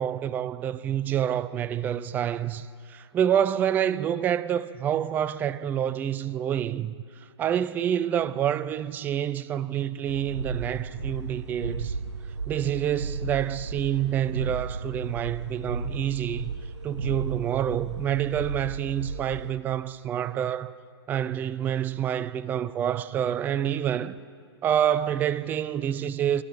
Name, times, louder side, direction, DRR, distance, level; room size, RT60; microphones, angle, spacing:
voice 1, 0.0-6.9 7.4-11.9 12.5-16.5 16.8-20.7 21.1-24.2 24.6-26.4, right 10 dB, 10° right, 0.3 m, -27 dB
sound 1, 10.1-19.5, right 4 dB, 85° right, 0.6 m, -34 dB
23.0 x 11.0 x 5.6 m
figure-of-eight pair, 115°, 14 cm